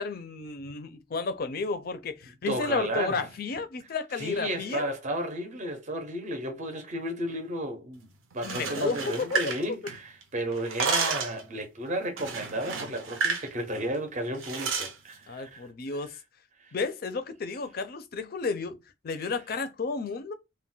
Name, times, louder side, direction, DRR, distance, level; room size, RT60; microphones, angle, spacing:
voice 1, 0.0-4.9 8.4-9.4 15.3-16.1 16.7-18.8 19.0-20.3, left 4 dB, 50° left, 0.4 m, -32 dB
voice 2, 2.5-3.3 4.2-8.1 8.3-16.1 16.6-16.7 19.2-19.3, right 1 dB, 35° right, 0.5 m, -33 dB
sound 1, 8.3-10.2 10.5-11.4 12.2-13.5 13.8-13.9 14.4-14.9, right 5 dB, 90° right, 0.6 m, -31 dB
2.2 x 2.1 x 3.8 m
head